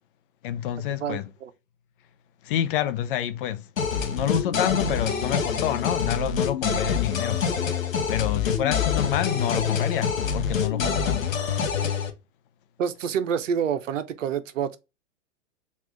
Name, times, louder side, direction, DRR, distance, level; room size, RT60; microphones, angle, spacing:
voice 1, 0.4-1.3 2.4-3.6 4.1-7.4 8.1-11.3, left 11 dB, 45° left, 0.5 m, -27 dB
voice 2, 1.0-1.5 12.8-14.8, right 7 dB, 75° right, 0.7 m, -27 dB
sound 1, 3.8-12.1, left 6 dB, 85° left, 0.8 m, -26 dB
3.5 x 2.5 x 3.4 m
hypercardioid pair, 110°, 39 cm